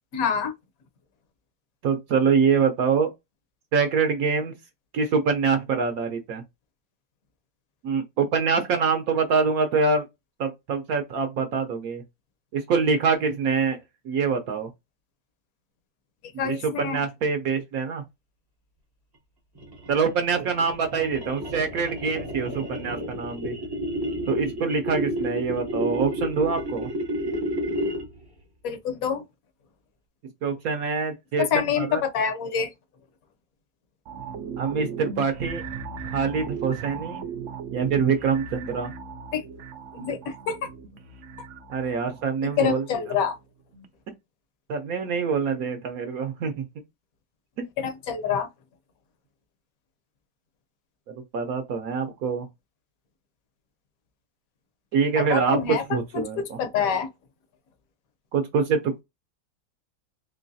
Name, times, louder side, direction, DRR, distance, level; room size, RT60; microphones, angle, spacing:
voice 1, 0.1-0.5 16.4-17.0 28.6-29.2 31.5-32.7 39.3-39.4 39.9-40.2 40.5-40.7 42.6-43.3 47.8-48.5 55.3-55.8 56.4-57.1, left 7 dB, 60° left, 1.0 m, -26 dB
voice 2, 1.8-3.1 3.7-4.5 4.9-6.4 7.8-10.0 10.4-12.0 12.5-13.8 14.0-14.7 16.3-18.0 19.9-23.6 24.3-26.9 30.4-31.5 31.8-32.0 34.6-35.6 36.0-37.2 37.7-38.9 41.7-42.8 44.7-46.6 47.6-47.7 51.1-52.5 54.9-56.6 58.3-59.0, right 5 dB, 65° right, 0.9 m, -25 dB
sound 1, 19.5-28.2, equal, 25° right, 0.5 m, -31 dB
sound 2, 34.0-43.4 43.7-43.8, right 6 dB, 90° right, 0.6 m, -38 dB
3.8 x 2.9 x 2.7 m
omnidirectional pair, 1.9 m